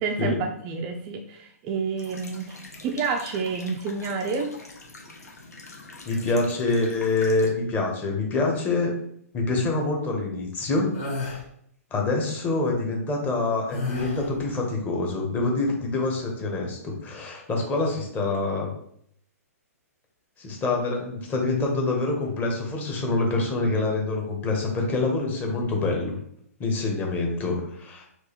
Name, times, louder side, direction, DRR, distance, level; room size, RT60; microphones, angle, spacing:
voice 1, 0.0-4.5, right 5 dB, 30° right, 4 dB, 0.3 m, -29 dB
sound 1, 2.0-7.5, left 3 dB, 85° left, 0.9 m, -44 dB
voice 2, 6.1-8.9 9.3-10.9 11.9-18.7 20.4-26.2 26.6-28.1, left 3 dB, 20° left, 0 dB, 0.9 m, -26 dB
sound 2, 10.9-11.4 13.7-14.4, left 3 dB, 40° left, 1.5 m, -31 dB
4.6 x 2.3 x 3.0 m, 0.69 s
hypercardioid pair, 130°, 9 cm